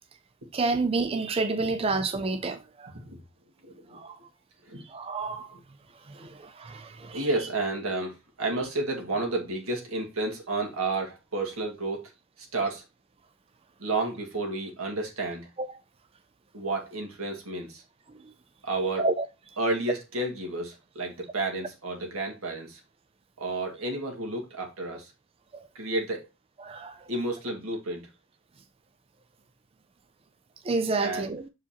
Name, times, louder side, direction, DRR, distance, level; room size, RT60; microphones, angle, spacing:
voice 1, 0.5-2.9 3.9-4.2 4.9-5.5 6.2-7.2 19.0-19.2 25.5-25.6 26.6-26.9 30.7-31.4, right 3 dB, 25° right, 0.4 m, -29 dB
voice 2, 3.6-4.0 4.7-4.8 6.1-6.3 7.0-12.1 12.4-12.8 13.8-15.5 16.5-17.8 18.6-19.1 19.6-22.8 23.4-25.1 25.8-26.3 27.1-28.1 31.0-31.3, right 2 dB, 85° right, 2.0 m, -31 dB
7.0 x 4.8 x 2.9 m
head